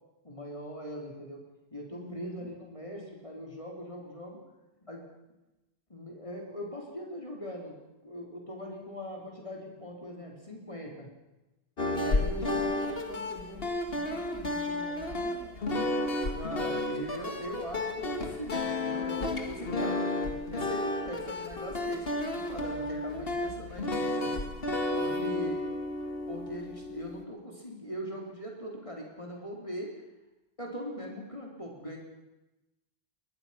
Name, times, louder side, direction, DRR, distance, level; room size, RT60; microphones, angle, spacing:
voice 1, 0.2-1.4 1.7-4.4 4.8-5.0 5.9-7.7 8.0-11.1 11.9-12.7 16.3-20.1 20.5-24.3 24.9-25.6 26.3-29.9 30.6-32.0, equal, 30° left, -1 dB, 3.9 m, -40 dB
voice 2, 1.9-2.5 12.3-15.8 25.0-25.5, left 1 dB, 15° right, -4 dB, 4.2 m, -47 dB
sound 1, 11.8-27.2, left 2 dB, 65° left, 2.0 m, -32 dB
21.5 x 20.5 x 5.9 m, 0.99 s
omnidirectional pair, 1.0 m